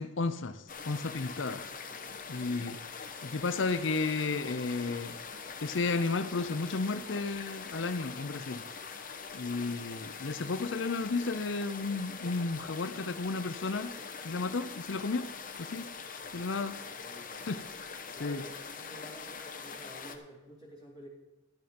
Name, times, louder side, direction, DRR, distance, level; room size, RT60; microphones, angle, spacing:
voice 1, 0.0-1.6 2.3-2.8 3.2-5.2 5.6-8.6 9.3-13.9 14.2-15.3 15.6-15.9 16.3-16.8 17.5-17.6 18.2-18.4, left 3 dB, 70° left, 0.7 m, -33 dB
sound 1, 0.7-20.2, left 5 dB, 45° left, 1.1 m, -43 dB
voice 2, 1.9-2.3 16.2-16.5 16.8-17.4 18.1-21.1, equal, 20° right, 3.9 m, -51 dB
13.0 x 7.9 x 5.2 m
head